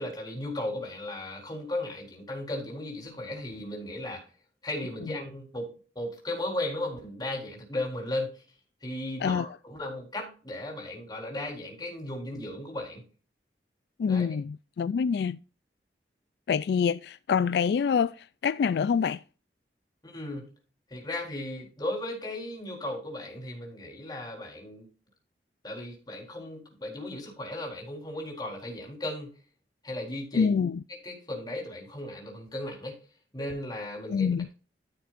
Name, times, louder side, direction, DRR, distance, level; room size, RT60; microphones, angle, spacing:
voice 1, 0.0-4.2 4.6-5.7 6.0-8.4 8.8-13.0 14.1-14.3 20.0-20.4 20.9-24.9 25.6-29.3 29.8-30.5 31.0-33.0 33.3-34.5, left 1 dB, 25° left, 4.0 m, -36 dB
voice 2, 14.0-15.4 16.5-19.2 30.3-30.8 34.1-34.5, left 6 dB, 70° left, 0.3 m, -26 dB
14.5 x 6.8 x 2.5 m
head